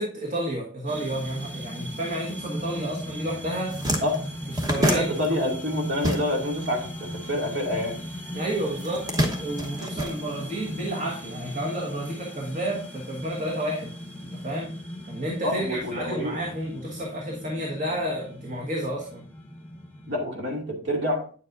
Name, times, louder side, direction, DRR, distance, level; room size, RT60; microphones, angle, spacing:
voice 1, 0.0-3.8 4.5-5.2 8.3-13.9 14.2-14.7 15.1-19.3, right 1 dB, 40° right, 1.4 m, -31 dB
sound 1, 0.9-20.2, equal, 10° left, 1.2 m, -38 dB
sound 2, 3.1-3.2 3.5-6.7 6.9-8.1 8.8-10.8, equal, 20° right, 1.0 m, -28 dB
voice 2, 4.7-8.0 15.4-16.4 20.1-21.2, left 1 dB, 60° right, 2.4 m, -27 dB
9.1 x 7.3 x 2.5 m
head